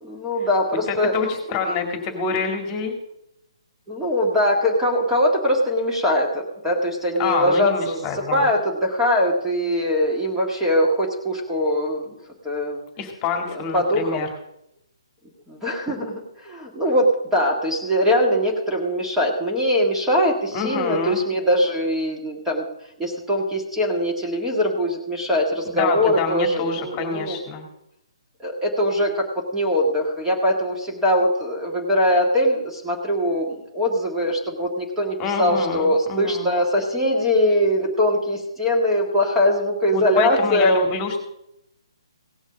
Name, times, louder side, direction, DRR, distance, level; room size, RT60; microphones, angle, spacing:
voice 1, 0.0-1.1 3.9-12.2 12.4-12.8 13.5-14.2 15.5-22.6 23.0-27.4 28.4-40.9, equal, 5° right, -2 dB, 1.8 m, -22 dB
voice 2, 0.9-2.9 7.2-8.5 13.0-14.3 20.5-21.2 25.7-27.7 35.2-36.5 39.9-41.2, left 5 dB, 25° left, 4 dB, 2.1 m, -26 dB
17.0 x 6.3 x 6.3 m, 0.80 s
figure-of-eight pair, 135°, 3 cm